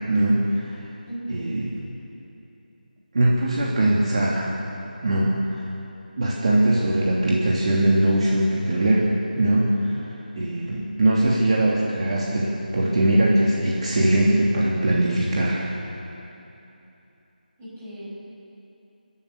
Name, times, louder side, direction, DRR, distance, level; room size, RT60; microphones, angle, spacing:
voice 1, 0.1-0.7 1.3-1.7 3.1-4.5 5.0-5.7 6.2-9.1 9.3-10.0 10.4-15.6, right 1 dB, 45° right, -5 dB, 3.0 m, -21 dB
voice 2, 1.1-1.6 17.6-18.3, right 1 dB, 15° right, -9 dB, 6.4 m, -36 dB
29.5 x 13.0 x 6.8 m, 2.9 s
figure-of-eight pair, 170°, 5 cm